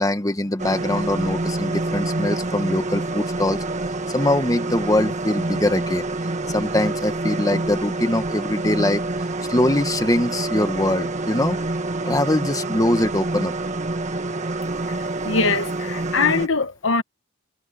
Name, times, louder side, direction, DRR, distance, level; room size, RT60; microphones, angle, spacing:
voice 1, 0.0-3.6 4.1-6.1 6.5-9.0 9.5-11.6 12.1-13.5, left 1 dB, 20° left, 1.3 m, -22 dB
sound 1, 0.6-16.5, right 2 dB, 40° right, 1.5 m, -27 dB
voice 2, 15.2-17.0, left 4 dB, 80° left, 1.3 m, -22 dB
head